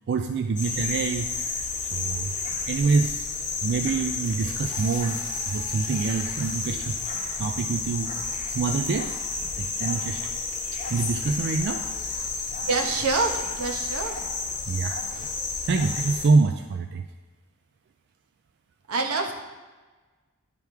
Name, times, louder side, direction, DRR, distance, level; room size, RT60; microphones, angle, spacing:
voice 1, 0.1-1.6 1.9-2.3 2.7-3.2 3.6-7.0 7.4-8.1 8.5-9.1 9.6-10.3 10.9-11.8 14.7-15.3 15.7-17.0, right 4 dB, 50° right, 6 dB, 0.3 m, -26 dB
sound 1, 0.6-16.3, left 4 dB, 35° left, 0.9 m, -31 dB
voice 2, 12.7-14.2 18.9-19.3, right 3 dB, 85° right, 2 dB, 1.0 m, -26 dB
9.9 x 3.5 x 4.6 m, 1.3 s
head